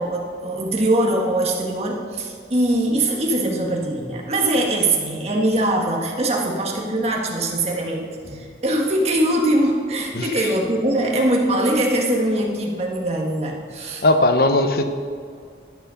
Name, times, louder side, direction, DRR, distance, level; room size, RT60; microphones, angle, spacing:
voice 1, 0.0-14.0, right 1 dB, 35° right, 0 dB, 1.6 m, -22 dB
voice 2, 10.1-10.5 14.0-14.8, left 2 dB, 55° left, 8 dB, 0.8 m, -18 dB
12.0 x 8.1 x 5.8 m, 2.1 s
head